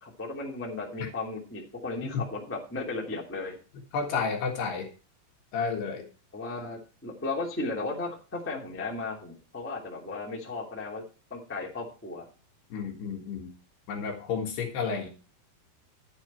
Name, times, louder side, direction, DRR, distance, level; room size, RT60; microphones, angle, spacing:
voice 1, 0.0-3.6 6.3-11.0 11.3-12.2, left 3 dB, 5° left, -2 dB, 1.6 m, -35 dB
voice 2, 3.9-4.9 5.5-6.0 12.7-13.5 13.9-15.1, left 5 dB, 65° left, 2 dB, 3.4 m, -31 dB
11.5 x 9.5 x 4.5 m, 0.34 s
omnidirectional pair, 5.7 m